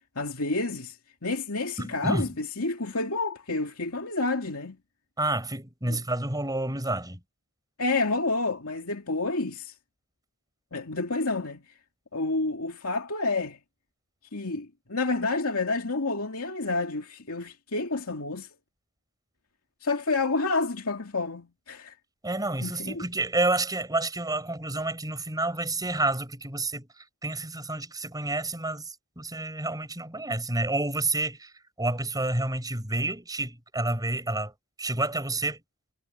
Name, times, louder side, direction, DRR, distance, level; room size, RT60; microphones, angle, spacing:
voice 1, 0.2-4.8 5.9-6.0 7.8-9.7 10.7-11.6 12.1-13.6 14.3-18.5 19.8-21.9 22.6-23.0, left 3 dB, 90° left, 2.4 m, -29 dB
voice 2, 1.8-2.3 5.2-7.2 22.2-26.9 27.2-31.5 31.8-34.5 34.8-35.6, right 2 dB, 20° right, 5.6 m, -29 dB
head